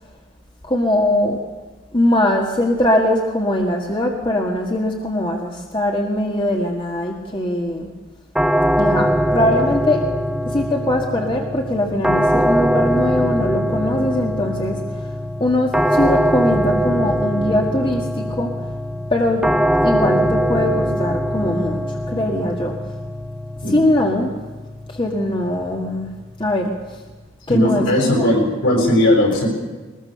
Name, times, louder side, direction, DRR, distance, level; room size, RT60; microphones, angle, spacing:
voice 1, 0.6-1.4 1.9-7.9 8.8-10.1 10.5-18.5 19.1-19.4 19.8-22.7 23.6-24.3 24.9-26.1 26.4-27.0 27.5-28.3, left 1 dB, 25° left, 1 dB, 1.8 m, -21 dB
sound 1, 8.4-27.3, equal, 5° right, 0.7 m, -22 dB
voice 2, 27.5-29.5, left 1 dB, 65° left, 1 dB, 7.7 m, -17 dB
21.5 x 21.0 x 6.8 m, 1.3 s
head